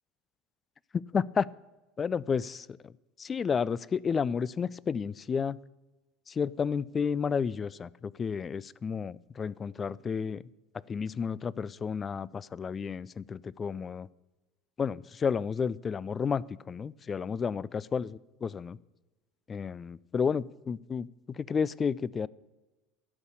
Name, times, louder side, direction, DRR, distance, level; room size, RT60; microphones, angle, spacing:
voice 1, 0.9-1.5 2.0-2.9 3.2-5.6 6.3-10.4 10.9-14.1 14.8-18.1 18.4-18.8 19.5-22.3, left 6 dB, 30° left, 22 dB, 0.4 m, -31 dB
12.5 x 5.6 x 8.4 m, 1.1 s
hypercardioid pair, 80°, 0 cm